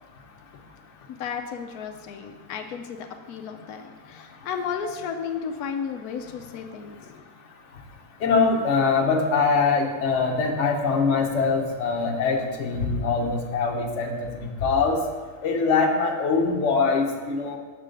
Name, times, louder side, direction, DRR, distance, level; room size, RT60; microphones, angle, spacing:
voice 1, 1.1-7.1, left 6 dB, 90° left, 5 dB, 1.1 m, -33 dB
voice 2, 8.2-14.4 14.6-15.0 15.4-17.6, left 4 dB, 55° left, 2 dB, 1.2 m, -23 dB
7.3 x 6.8 x 3.8 m, 1.5 s
omnidirectional pair, 1.5 m